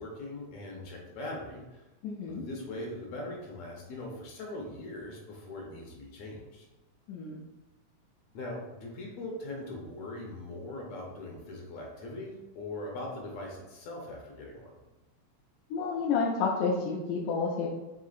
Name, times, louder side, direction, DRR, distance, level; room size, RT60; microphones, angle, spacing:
voice 1, 0.0-1.9 2.3-6.7 8.3-14.7, left 2 dB, 75° left, -1 dB, 1.8 m, -41 dB
voice 2, 2.0-2.4 7.1-7.4 15.7-17.7, left 5 dB, 90° left, -3 dB, 2.0 m, -30 dB
5.0 x 3.6 x 2.4 m, 1.1 s
omnidirectional pair, 3.4 m